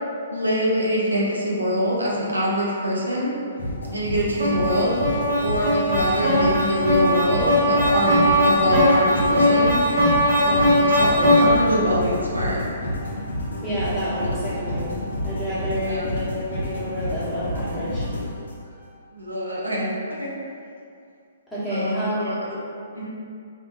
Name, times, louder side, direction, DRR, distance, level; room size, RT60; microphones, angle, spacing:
voice 1, 0.3-3.4 3.9-5.0 5.4-9.8 10.4-12.6 15.8-16.0 19.1-20.3 21.7-22.5 22.9-23.1, equal, 85° right, -5 dB, 0.5 m, -24 dB
sound 1, 3.6-18.8, left 1 dB, 75° left, 0.6 m, -30 dB
sound 2, 4.4-11.8, equal, 70° right, 1.0 m, -19 dB
voice 2, 13.6-14.9 15.2-18.1 21.5-22.6, equal, 5° left, -13 dB, 1.1 m, -29 dB
2.6 x 2.2 x 2.4 m, 2.4 s
figure-of-eight pair, 125°, 0 cm